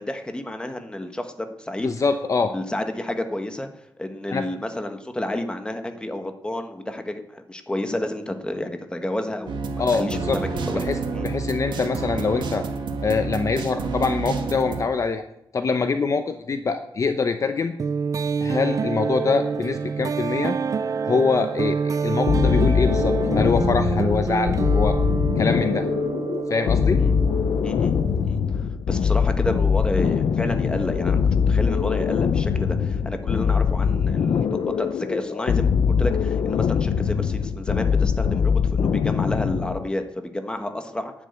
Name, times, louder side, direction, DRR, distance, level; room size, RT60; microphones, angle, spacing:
voice 1, 0.0-1.9 2.4-3.7 4.0-10.8 11.1-11.3 27.0-27.2 27.6-27.9 28.2-31.2 31.5-41.1, left 1 dB, 10° left, 6 dB, 1.4 m, -30 dB
voice 2, 1.8-2.5 4.3-4.4 9.8-10.4 10.7-11.0 11.2-12.7 13.0-15.2 15.5-17.7 18.4-20.6 21.0-25.0 25.4-25.9 26.5-27.0, left 4 dB, 40° left, 8 dB, 0.8 m, -24 dB
sound 1, 9.5-14.8, right 4 dB, 65° right, 1.9 m, -29 dB
sound 2, 17.8-28.4, right 5 dB, 40° right, 0.5 m, -27 dB
sound 3, 22.3-39.9, left 6 dB, 70° left, 0.8 m, -22 dB
11.0 x 9.9 x 8.3 m, 0.80 s
wide cardioid pair, 140°, 9 cm